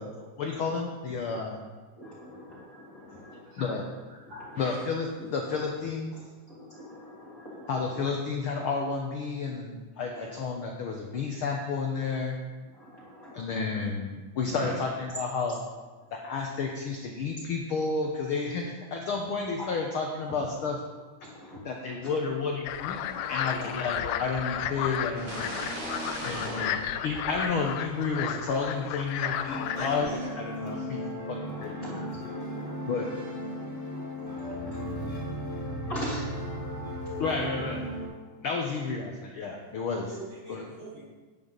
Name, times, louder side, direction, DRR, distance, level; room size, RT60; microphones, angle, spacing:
voice 1, 0.0-1.6 3.6-3.9 4.6-6.1 7.7-12.4 13.3-14.1 14.3-15.6 16.1-20.8 21.6-23.0 23.3-25.4 26.2-30.1 30.4-31.8 32.8-33.1 37.2-37.8 38.4-40.1 40.5-40.6, left 4 dB, 70° left, 1 dB, 1.3 m, -31 dB
voice 2, 2.0-3.4 4.3-4.6 5.2-5.3 5.5-5.6 6.1-6.2 6.5-8.1 10.1-10.3 12.0-12.1 12.7-13.4 14.5-14.7 16.0-16.1 19.6-19.7 21.2-22.1 23.0-23.7 25.7-26.6 29.2-29.3 30.6-30.7 31.4-33.1 33.5-34.8 35.9-36.3, equal, 30° left, -7 dB, 2.3 m, -44 dB
voice 3, 4.1-4.8 29.7-30.8 40.0-41.0, right 1 dB, 45° right, -8 dB, 5.0 m, -43 dB
sound 1, 22.7-30.1, left 10 dB, 85° left, 2.1 m, -33 dB
sound 2, 25.1-28.0, right 2 dB, 65° right, 0.9 m, -38 dB
sound 3, 29.5-38.1, equal, 15° left, 4.0 m, -36 dB
11.0 x 9.8 x 4.0 m, 1.4 s
omnidirectional pair, 3.6 m